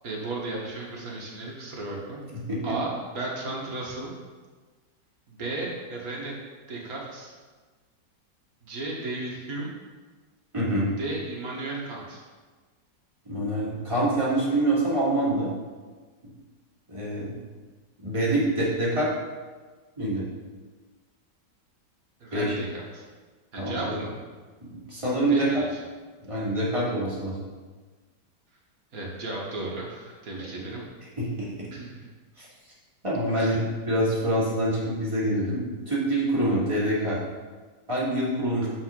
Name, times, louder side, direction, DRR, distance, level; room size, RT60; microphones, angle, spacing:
voice 1, 0.0-2.2 2.6-4.1 5.3-6.4 6.7-7.3 8.6-9.7 11.0-12.2 22.2-23.0 23.5-24.1 25.3-25.7 28.9-30.8 31.7-32.1 33.3-33.5 38.6-38.7, right 2 dB, 55° right, -3 dB, 1.9 m, -34 dB
voice 2, 2.3-2.7 10.5-10.9 13.3-15.5 16.9-17.3 18.0-19.1 20.0-20.3 22.3-22.5 23.6-24.0 24.6-25.6 26.2-27.4 30.6-30.7 31.2-31.7 32.4-32.5 33.0-33.6 33.9-37.2 37.9-38.7, right 1 dB, 15° right, -8 dB, 2.6 m, -26 dB
7.0 x 6.1 x 5.3 m, 1.4 s
omnidirectional pair, 1.9 m